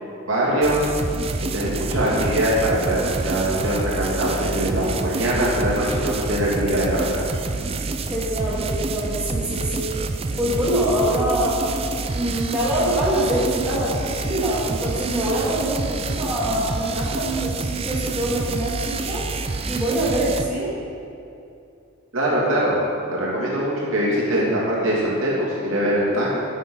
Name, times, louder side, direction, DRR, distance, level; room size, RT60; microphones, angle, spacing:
voice 1, 0.0-0.9 1.4-7.2 22.1-22.8 23.1-26.3, right 1 dB, 60° right, -6 dB, 2.6 m, -22 dB
sound 1, 0.6-20.4, right 3 dB, 25° right, 0.4 m, -28 dB
voice 2, 8.1-9.9 10.3-11.7 12.1-19.3 19.6-20.7, right 1 dB, 5° right, -9 dB, 2.2 m, -24 dB
10.5 x 7.0 x 5.4 m, 2.6 s
head